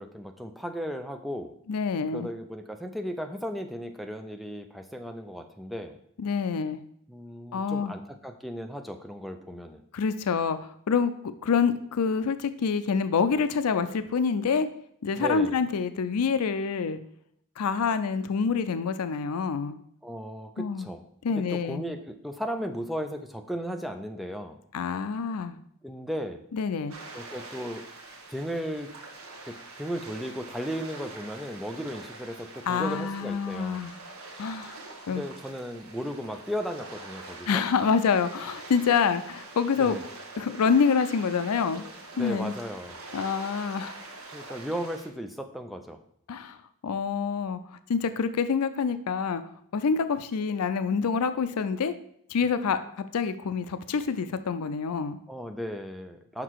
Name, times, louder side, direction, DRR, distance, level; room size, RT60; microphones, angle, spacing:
voice 1, 0.0-1.5 2.1-6.0 7.1-9.8 15.2-15.6 20.0-21.0 21.5-24.6 25.8-26.4 27.1-27.8 28.3-28.9 29.4-33.9 35.1-37.6 39.8-40.0 42.1-43.0 44.3-46.0 55.3-56.4, equal, ahead, 6 dB, 0.4 m, -35 dB
voice 2, 1.7-2.3 6.2-6.8 7.5-7.9 9.9-10.6 10.9-11.1 11.4-14.7 15.0-17.0 17.6-19.8 20.6-20.9 21.2-21.8 24.7-25.6 26.5-26.9 32.7-33.9 34.4-34.8 35.1-35.2 37.5-40.0 40.4-41.8 42.2-42.5 43.1-43.9 46.3-46.6 46.8-47.6 47.9-49.4 49.7-51.9 52.3-55.2, left 5 dB, 90° left, 11 dB, 0.5 m, -26 dB
sound 1, 26.9-45.1, right 3 dB, 70° right, 1.2 m, -45 dB
5.9 x 5.5 x 4.6 m, 0.70 s
head